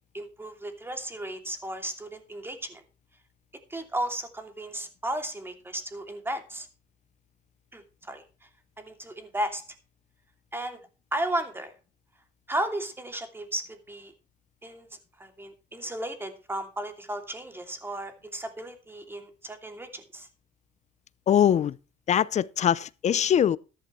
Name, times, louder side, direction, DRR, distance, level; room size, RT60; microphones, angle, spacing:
voice 1, 0.1-2.8 3.7-6.7 7.7-8.2 8.8-9.6 10.5-10.8 11.1-11.7 12.5-14.1 14.6-14.9 15.2-20.3, right 1 dB, 15° right, 2.7 m, -34 dB
voice 2, 21.3-21.8 22.1-23.6, left 9 dB, 45° left, 0.6 m, -22 dB
14.0 x 11.0 x 3.2 m
cardioid pair, 110°, 17 cm